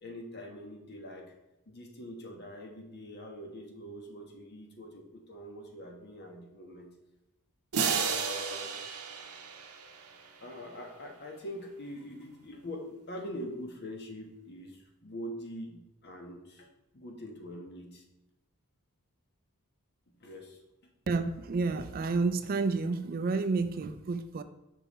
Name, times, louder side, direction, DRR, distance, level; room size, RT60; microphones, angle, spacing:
voice 1, 0.0-1.3 1.7-6.9 7.9-8.7 10.4-16.7 16.9-18.0 20.2-20.6, equal, 50° left, 2 dB, 1.2 m, -43 dB
sound 1, 7.7-10.5, right 6 dB, 80° right, 0.8 m, -33 dB
voice 2, 21.1-24.4, right 3 dB, 40° right, 11 dB, 0.4 m, -30 dB
5.5 x 5.5 x 4.1 m, 0.94 s
head